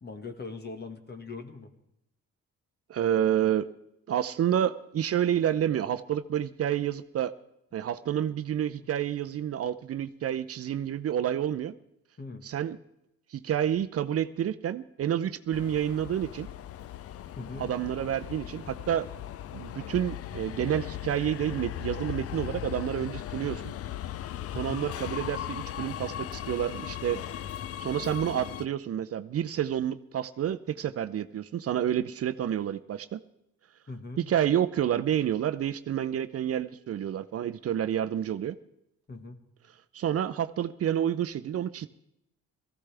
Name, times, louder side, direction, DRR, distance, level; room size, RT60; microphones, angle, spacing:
voice 1, 0.0-1.7 12.2-12.4 17.4-17.7 24.5-24.8 33.9-34.2 39.1-39.4, left 3 dB, 35° left, 7 dB, 1.7 m, -41 dB
voice 2, 2.9-3.7 4.1-7.3 7.7-11.7 12.4-12.8 13.3-16.5 17.6-19.1 19.5-23.7 24.5-27.2 27.8-33.2 34.2-38.6 39.9-41.9, right 10 dB, 50° right, 12 dB, 0.6 m, -29 dB
Subway metro underground, 15.5-28.7, left 11 dB, 50° left, 0.5 m, -38 dB
18.5 x 15.0 x 3.4 m, 0.81 s
cardioid pair, 90°, 30 cm